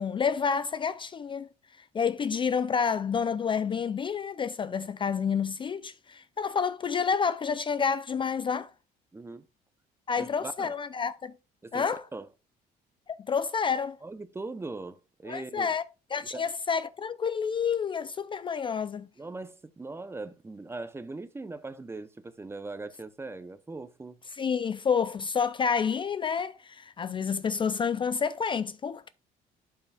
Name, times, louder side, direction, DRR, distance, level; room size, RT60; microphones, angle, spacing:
voice 1, 0.0-1.5 1.9-8.7 10.1-11.3 11.7-12.0 13.1-14.0 15.3-15.8 16.1-19.1 24.4-29.1, left 6 dB, 30° left, 0.4 m, -29 dB
voice 2, 9.1-9.5 10.2-10.7 11.6-11.9 12.1-12.3 14.0-15.7 16.3-16.5 19.2-24.2, right 3 dB, 15° right, 0.6 m, -40 dB
11.5 x 5.6 x 2.3 m
cardioid pair, 110°, 17 cm